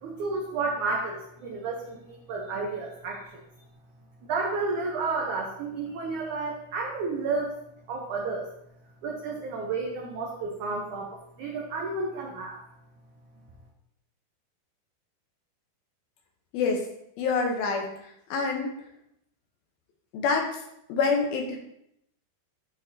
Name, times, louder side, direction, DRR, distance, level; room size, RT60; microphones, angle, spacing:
voice 1, 0.0-3.4 4.3-7.6 7.9-8.5 9.0-12.6, right 3 dB, 90° right, 0 dB, 1.7 m, -31 dB
voice 2, 17.2-17.9 18.3-18.7 20.1-20.6 20.9-21.6, left 4 dB, 75° left, 2 dB, 2.6 m, -26 dB
12.0 x 4.7 x 2.7 m, 0.77 s
omnidirectional pair, 4.7 m